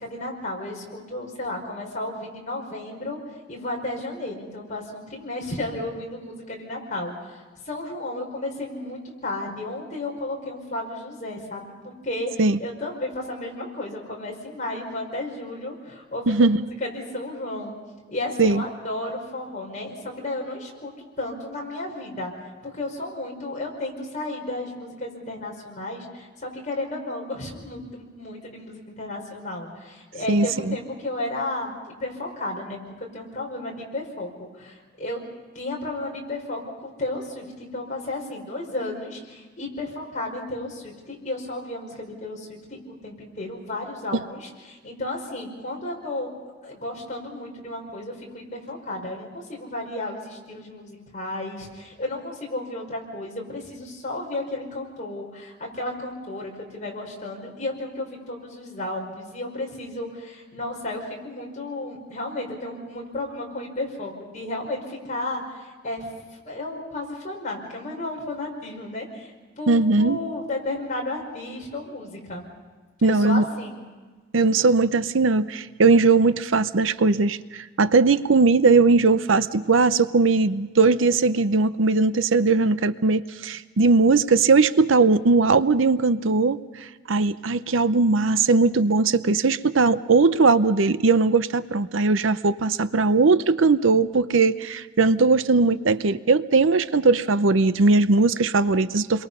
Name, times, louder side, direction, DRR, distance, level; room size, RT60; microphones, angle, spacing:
voice 1, 0.0-3.2 3.5-7.4 7.7-11.7 12.0-12.3 12.6-16.5 16.8-17.8 18.1-20.9 21.2-22.3 22.7-35.2 35.5-42.5 42.9-46.3 46.6-66.1 66.4-72.5 73.0-73.8, left 2 dB, 40° left, -1 dB, 5.2 m, -33 dB
voice 2, 16.3-16.6 18.4-18.6 30.3-30.8 69.7-70.2 73.0-73.4 74.3-86.6 87.1-99.3, right 3 dB, 70° right, 13 dB, 0.7 m, -19 dB
29.0 x 22.5 x 5.5 m, 1.3 s
head